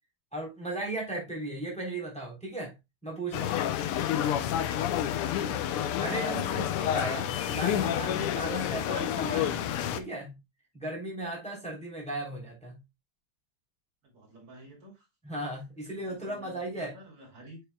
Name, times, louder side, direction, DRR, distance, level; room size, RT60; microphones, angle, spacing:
voice 1, 0.3-2.7 3.0-3.5 5.4-5.6 5.9-9.6 9.9-10.4 10.7-12.8 15.2-16.9, right 2 dB, 5° left, 3.2 m, -36 dB
sound 1, 3.3-10.0, left 10 dB, 85° left, 1.7 m, -29 dB
voice 2, 14.0-15.1 15.8-17.6, right 1 dB, 75° right, 4.1 m, -51 dB
7.6 x 6.8 x 2.2 m
omnidirectional pair, 2.4 m